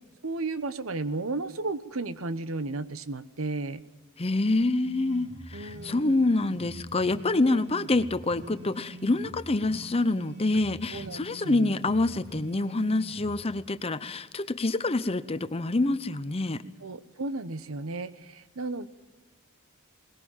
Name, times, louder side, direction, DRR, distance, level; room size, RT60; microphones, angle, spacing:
voice 1, 0.2-3.8 5.5-6.2 7.4-7.6 10.9-11.7 16.8-18.9, right 3 dB, 80° right, 13 dB, 0.9 m, -34 dB
voice 2, 4.2-16.6, left 2 dB, 30° left, 13 dB, 0.7 m, -26 dB
sound 1, 4.8-13.4, equal, 50° right, 3.0 m, -46 dB
21.5 x 20.0 x 7.3 m, 1.1 s
head